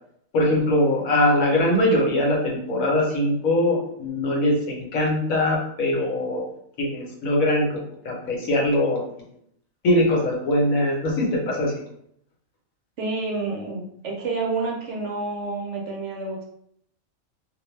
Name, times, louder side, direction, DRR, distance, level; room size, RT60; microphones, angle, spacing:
voice 1, 0.3-6.4 6.8-7.8 8.0-9.0 9.8-11.8, left 1 dB, 80° left, -2 dB, 1.2 m, -22 dB
voice 2, 13.0-16.4, right 3 dB, 65° right, -1 dB, 0.8 m, -29 dB
2.5 x 2.2 x 3.0 m, 0.70 s
omnidirectional pair, 1.4 m